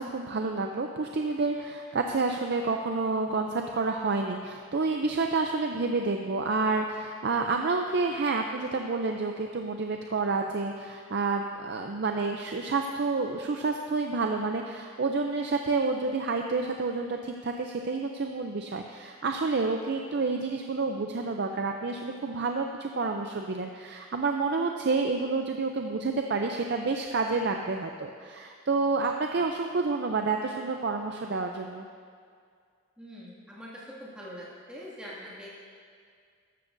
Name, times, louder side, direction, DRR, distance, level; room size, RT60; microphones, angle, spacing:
voice 1, 0.0-31.9, right 3 dB, 50° right, 3 dB, 0.5 m, -29 dB
voice 2, 33.0-35.7, equal, 5° right, -7 dB, 2.1 m, -44 dB
13.5 x 12.5 x 2.6 m, 2.1 s
head